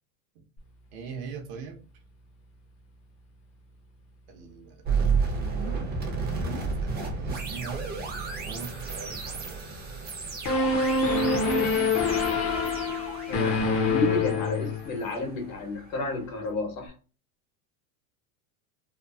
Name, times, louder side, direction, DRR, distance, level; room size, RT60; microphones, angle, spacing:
voice 1, 0.9-1.8 4.3-4.8 6.2-7.9 8.4-9.6, right 6 dB, 55° right, 3 dB, 0.8 m, -41 dB
sound 1, 4.9-15.9, right 4 dB, 20° right, 0.6 m, -32 dB
sound 2, 10.4-15.1, left 3 dB, 35° left, 0.7 m, -25 dB
voice 2, 13.3-16.9, left 2 dB, 65° left, 3 dB, 1.2 m, -31 dB
2.9 x 2.0 x 2.4 m, 0.35 s
supercardioid pair, 120°, 43 cm